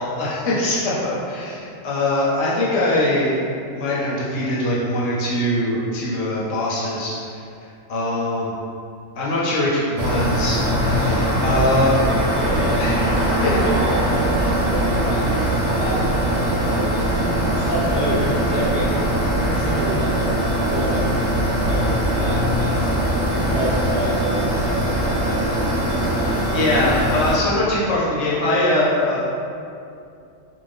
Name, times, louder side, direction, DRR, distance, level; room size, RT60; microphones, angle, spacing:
voice 1, 0.0-3.4 3.7-7.4 7.9-8.5 9.2-12.0 12.8-13.5 14.4-14.5 26.2-29.2, left 1 dB, 75° left, -7 dB, 1.0 m, -22 dB
sound 1, 10.0-27.4, right 1 dB, 80° right, 1.0 m, -21 dB
voice 2, 12.2-15.2 15.7-17.1 17.5-18.9 19.4-20.1 20.7-22.9 23.5-25.1, right 1 dB, 10° right, -12 dB, 0.6 m, -29 dB
2.5 x 2.3 x 3.3 m, 2.5 s
omnidirectional pair, 1.3 m